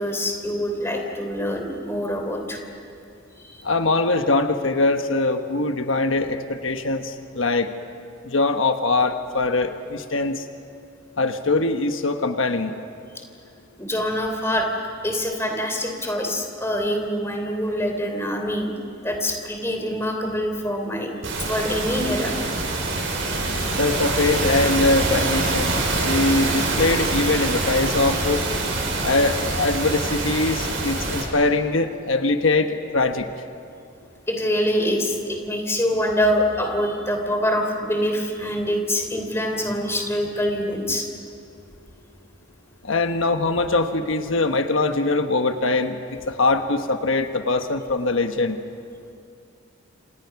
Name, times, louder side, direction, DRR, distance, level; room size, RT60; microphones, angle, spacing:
voice 1, 0.0-2.6 3.3-3.7 13.8-14.7 15.0-18.7 19.0-21.1 21.4-22.4 34.3-41.0, equal, 15° left, 3 dB, 3.3 m, -25 dB
voice 2, 3.6-7.7 8.2-10.4 11.2-12.7 23.7-28.4 29.0-33.3 42.8-48.6, left 3 dB, 80° left, 7 dB, 1.2 m, -22 dB
sound 1, 21.2-31.2, right 2 dB, 90° right, 6.1 m, -25 dB
29.0 x 27.0 x 5.9 m, 2.5 s
head